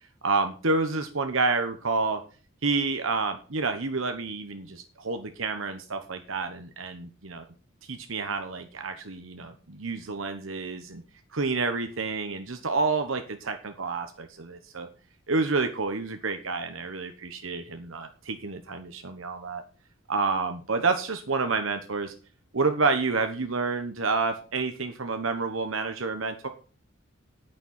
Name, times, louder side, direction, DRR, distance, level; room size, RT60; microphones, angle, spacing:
voice 1, 0.2-2.2 2.6-7.5 7.9-11.0 11.3-14.9 15.3-19.6 20.1-22.1 22.5-26.5, right 4 dB, 80° right, 7 dB, 1.1 m, -29 dB
10.5 x 9.2 x 5.5 m, 0.37 s
head